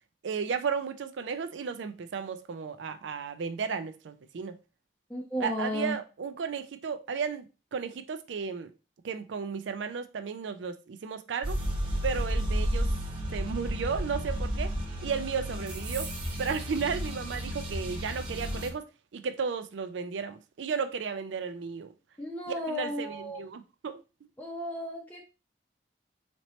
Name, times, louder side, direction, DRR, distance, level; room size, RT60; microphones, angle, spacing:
voice 1, 0.2-4.6 5.4-8.7 9.0-11.6 12.0-12.9 13.3-14.7 15.0-16.1 16.4-18.9 19.1-21.9 22.5-24.0, right 6 dB, 90° right, 0.4 m, -34 dB
voice 2, 5.1-6.0 22.2-23.4 24.4-25.3, equal, 10° left, 0.6 m, -34 dB
sound 1, 11.4-18.7, equal, 30° right, 1.2 m, -32 dB
4.2 x 2.9 x 3.1 m
head